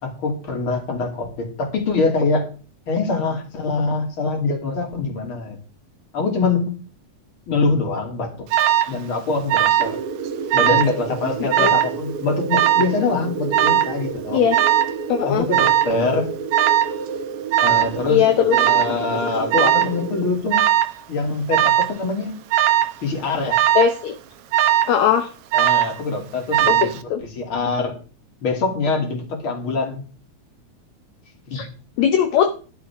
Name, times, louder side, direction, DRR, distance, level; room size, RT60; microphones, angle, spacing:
voice 1, 0.0-2.5 2.9-5.6 6.1-6.8 7.5-8.5 8.9-10.0 10.5-14.4 15.2-16.3 17.6-20.7 21.1-22.3 23.0-23.6 25.5-26.9 27.2-27.9 28.4-30.0 31.5-31.6, left 3 dB, 45° left, 2 dB, 3.3 m, -24 dB
Alarm, 8.5-8.9 9.5-10.0 10.3-10.9 11.5-11.9 12.5-13.0 13.5-14.0 14.5-15.0 15.5-15.9 16.5-16.9 17.5-17.9 18.5-19.0 19.5-20.0 20.5-20.9 21.5-21.9 22.5-23.0 23.5-23.9 24.5-25.0 25.5-26.0 26.5-27.0, right 12 dB, 75° right, 1.3 m, -18 dB
sound 1, 9.8-20.3, right 5 dB, 55° right, 1.2 m, -30 dB
voice 2, 15.1-15.5 18.1-18.6 23.7-24.1 24.9-25.3 26.7-27.2 31.5-31.7 32.0-32.5, left 9 dB, 75° left, 6 dB, 2.2 m, -19 dB
11.5 x 11.5 x 3.6 m, 0.38 s
omnidirectional pair, 3.4 m